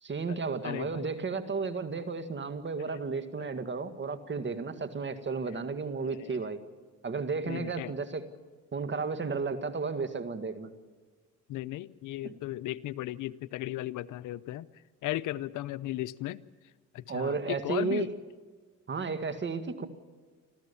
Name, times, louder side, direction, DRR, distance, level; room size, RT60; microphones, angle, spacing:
voice 1, 0.0-6.6 7.0-8.2 8.7-10.7 12.2-12.3 17.1-18.1 18.9-19.9, right 4 dB, 40° right, 9 dB, 2.0 m, -33 dB
voice 2, 0.6-1.0 3.4-3.5 6.0-6.3 7.5-7.9 11.5-14.7 15.0-16.4 16.9-18.1, left 15 dB, 85° left, 16 dB, 0.7 m, -36 dB
26.5 x 14.5 x 7.1 m, 1.4 s
cardioid pair, 90°, 30 cm